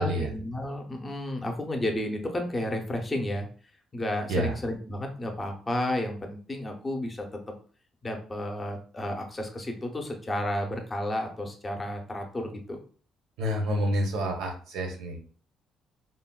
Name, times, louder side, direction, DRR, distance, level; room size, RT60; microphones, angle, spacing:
voice 1, 0.0-3.5 3.9-7.4 8.0-12.8, left 1 dB, 20° left, 3 dB, 0.6 m, -32 dB
voice 2, 13.4-15.2, equal, 90° right, 3 dB, 0.8 m, -28 dB
3.8 x 2.1 x 2.2 m, 0.43 s
cardioid pair, 140°, 0 cm